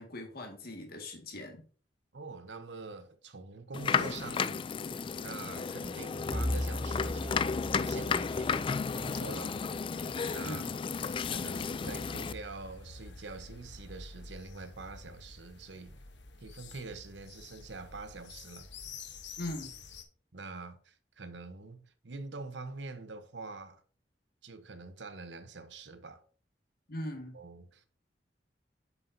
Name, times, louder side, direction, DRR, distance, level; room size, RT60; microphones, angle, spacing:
voice 1, 0.0-1.6 10.4-10.7 19.4-19.7 26.9-27.3, left 1 dB, 55° left, 1.9 m, -40 dB
voice 2, 2.1-4.7 5.2-9.6 10.3-10.6 11.3-16.0 16.4-18.7 20.3-23.8 24.4-26.2 27.3-27.9, right 3 dB, 80° right, 1.0 m, -45 dB
sound 1, 3.7-12.3, left 5 dB, 30° left, 0.3 m, -33 dB
Bowed string instrument, 6.3-10.5, equal, 15° right, 1.0 m, -38 dB
sound 2, 10.9-20.0, left 3 dB, 80° left, 1.1 m, -49 dB
8.8 x 7.1 x 2.7 m
head